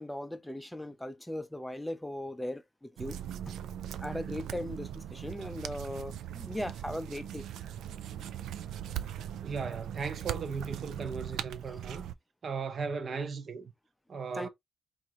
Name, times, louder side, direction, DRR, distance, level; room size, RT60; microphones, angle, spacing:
voice 1, 0.0-3.2 3.5-3.6 4.0-7.4 14.4-14.5, left 1 dB, 5° left, 0.5 m, -38 dB
sound 1, 3.0-12.1, right 10 dB, 85° right, 0.3 m, -40 dB
voice 2, 9.4-12.1 12.4-13.7 14.1-14.5, right 5 dB, 40° right, 0.7 m, -37 dB
4.6 x 2.5 x 2.9 m
cardioid pair, 145°, 0 cm